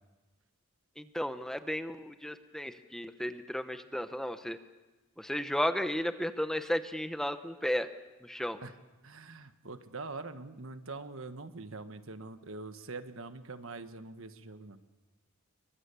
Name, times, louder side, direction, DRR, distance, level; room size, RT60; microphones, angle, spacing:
voice 1, 1.0-4.6 5.2-7.9 8.2-8.6, equal, ahead, 9 dB, 0.9 m, -34 dB
voice 2, 9.0-14.8, right 3 dB, 70° right, 9 dB, 1.4 m, -44 dB
29.5 x 23.5 x 7.0 m, 1.2 s
head